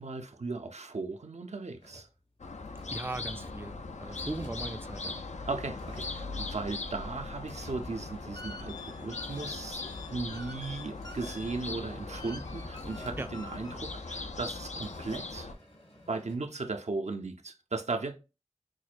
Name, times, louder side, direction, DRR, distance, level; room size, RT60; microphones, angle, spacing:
voice 1, 0.0-2.1 4.1-4.3 5.5-15.5 16.1-18.2, right 3 dB, 75° right, 0.5 m, -37 dB
sound 1, 1.8-16.4, equal, 65° left, 1.7 m, -56 dB
sound 2, 2.4-15.5, left 3 dB, 85° left, 0.4 m, -40 dB
voice 2, 2.9-5.2 13.2-13.3, right 2 dB, 20° right, 0.3 m, -38 dB
sound 3, 8.0-14.2, left 3 dB, 35° left, 0.5 m, -49 dB
6.1 x 2.2 x 2.5 m
wide cardioid pair, 40°, 12 cm